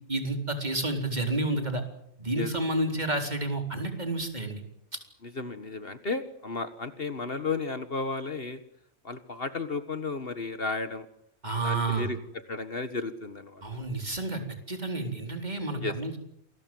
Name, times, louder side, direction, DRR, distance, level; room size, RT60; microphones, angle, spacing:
voice 1, 0.1-1.8 2.2-4.6 11.4-12.1 13.6-14.4 14.7-16.2, right 2 dB, 35° right, 4 dB, 4.3 m, -30 dB
voice 2, 5.2-8.6 9.0-11.1 11.6-12.2 12.5-13.6 15.8-15.9, left 3 dB, 50° left, 10 dB, 1.8 m, -33 dB
28.0 x 22.0 x 7.9 m, 0.72 s
omnidirectional pair, 1.3 m